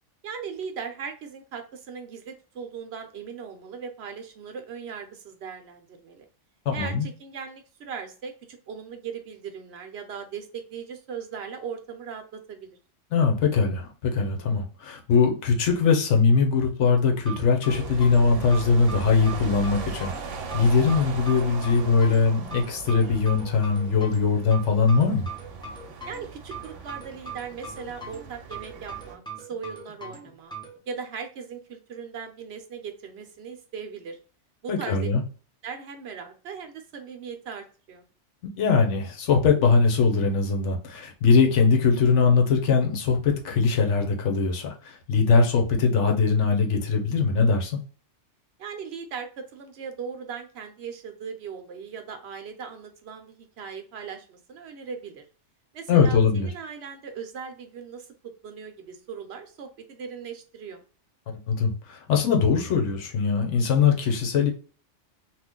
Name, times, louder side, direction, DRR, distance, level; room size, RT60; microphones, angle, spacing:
voice 1, 0.2-6.3 6.7-12.8 26.1-30.5 30.9-34.2 34.6-35.1 35.6-38.0 48.6-55.2 55.7-60.8, right 6 dB, 65° right, 6 dB, 0.8 m, -38 dB
voice 2, 6.7-7.1 13.1-25.3 34.7-35.2 38.6-47.8 55.9-56.5 61.5-64.5, left 5 dB, 75° left, 2 dB, 1.1 m, -21 dB
sound 1, 17.3-30.8, right 3 dB, 5° left, 0.6 m, -41 dB
sound 2, 17.6-29.2, right 5 dB, 90° right, 1.0 m, -39 dB
2.9 x 2.4 x 3.6 m, 0.39 s
omnidirectional pair, 1.3 m